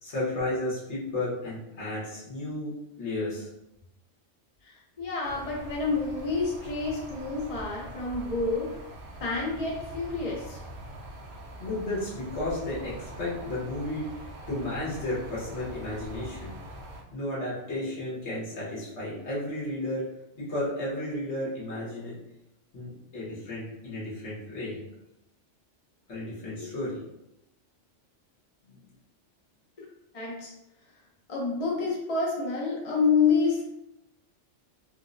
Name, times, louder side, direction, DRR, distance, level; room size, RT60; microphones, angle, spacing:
voice 1, 0.0-3.5 11.6-16.5 17.1-20.1 20.3-22.1 22.7-24.8 26.1-27.0 28.7-28.8, left 1 dB, 70° left, -7 dB, 1.5 m, -33 dB
voice 2, 4.6-8.7 9.2-10.6 26.6-26.7 30.1-30.5 31.3-33.7, left 4 dB, 35° left, -4 dB, 0.7 m, -28 dB
sound 1, 5.2-17.0, right 1 dB, 65° right, 0.8 m, -43 dB
4.5 x 2.1 x 2.5 m, 0.87 s
omnidirectional pair, 1.2 m